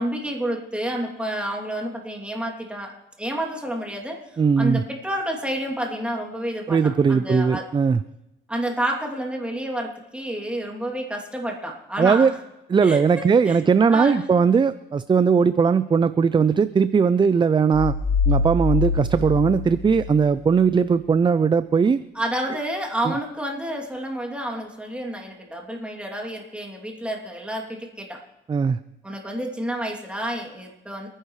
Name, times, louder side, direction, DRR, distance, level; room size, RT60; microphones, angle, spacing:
voice 1, 0.0-2.9 3.2-7.6 8.5-12.4 12.8-13.6 13.9-14.3 22.1-28.2 29.0-31.1, right 1 dB, 5° right, 0 dB, 2.8 m, -29 dB
voice 2, 4.4-4.8 6.7-8.0 12.0-12.3 12.7-18.0 18.3-22.0 23.0-23.2 28.5-28.8, right 5 dB, 25° right, 15 dB, 0.4 m, -19 dB
sound 1, 17.7-20.6, left 4 dB, 70° left, 5.4 m, -24 dB
27.5 x 10.0 x 3.2 m, 0.92 s
cardioid pair, 90°, 20 cm